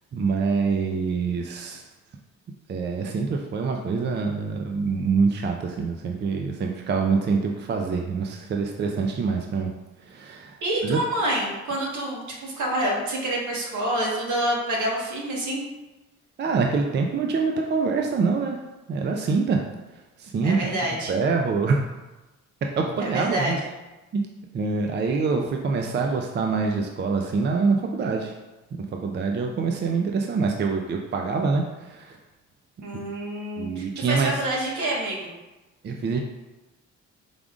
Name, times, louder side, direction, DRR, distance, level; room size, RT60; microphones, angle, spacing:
voice 1, 0.1-1.8 2.7-9.7 10.0-11.0 16.4-18.6 18.9-19.6 20.2-20.6 21.1-21.8 22.8-23.6 24.1-24.2 24.5-28.3 28.7-32.2 32.9-33.1 33.6-34.4 35.8-36.2, right 4 dB, 35° right, 2 dB, 0.4 m, -25 dB
voice 2, 10.6-15.6 20.4-21.1 23.0-23.7 32.8-35.3, right 1 dB, 70° right, -2 dB, 1.3 m, -27 dB
4.9 x 3.6 x 2.4 m, 1.1 s
cardioid pair, 90°, 30 cm